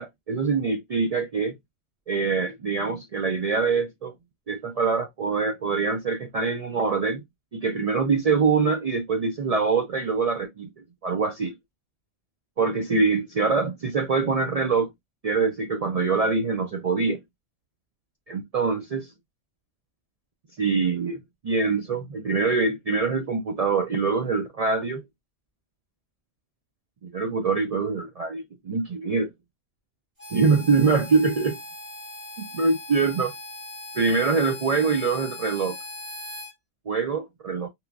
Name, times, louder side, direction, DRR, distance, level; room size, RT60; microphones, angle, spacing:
voice 1, 0.0-1.6 2.1-4.1 4.5-7.2 7.5-10.7 11.0-11.5 12.6-14.9 15.2-17.2 18.3-19.1 20.6-25.0 27.0-29.3 30.3-31.6 32.4-33.3 34.0-35.8 36.9-37.7, right 4 dB, 70° right, 0.3 m, -24 dB
Harmonica, 30.2-36.5, left 1 dB, 55° right, 1.6 m, -39 dB
3.0 x 2.1 x 2.3 m
omnidirectional pair, 1.2 m